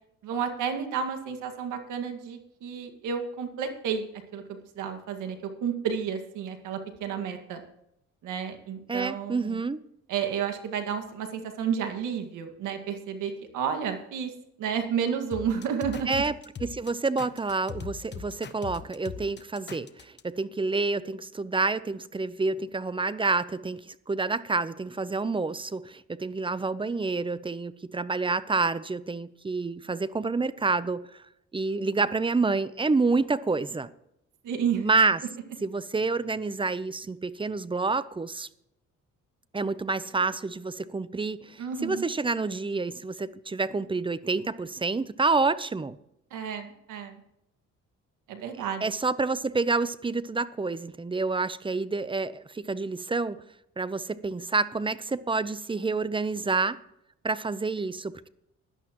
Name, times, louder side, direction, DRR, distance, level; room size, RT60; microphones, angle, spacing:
voice 1, 0.2-7.6 8.2-9.6 10.1-14.3 14.6-16.2 34.4-34.9 41.6-42.1 46.3-47.2 48.3-48.8, right 7 dB, 90° right, 1.9 m, -31 dB
voice 2, 8.9-9.8 16.1-16.3 16.6-31.2 31.5-33.9 34.7-35.2 35.6-38.5 39.5-46.0 48.8-53.4 53.8-56.8 57.2-58.3, right 3 dB, 15° right, 0.6 m, -28 dB
sound 1, 15.3-20.2, left 7 dB, 35° left, 1.0 m, -40 dB
17.0 x 11.5 x 3.0 m
cardioid pair, 90°, 30 cm